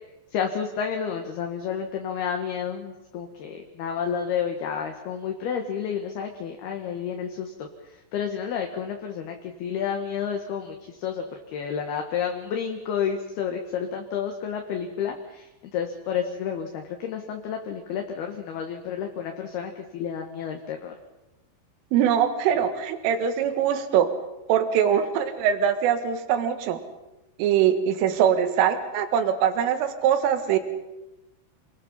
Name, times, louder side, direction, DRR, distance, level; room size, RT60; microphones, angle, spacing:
voice 1, 0.3-11.2 11.5-21.0, left 7 dB, 65° left, 3 dB, 3.0 m, -30 dB
voice 2, 21.9-24.1 24.5-26.8 27.4-30.6, right 9 dB, 80° right, 8 dB, 4.1 m, -22 dB
29.0 x 21.0 x 5.6 m, 0.98 s
omnidirectional pair, 5.8 m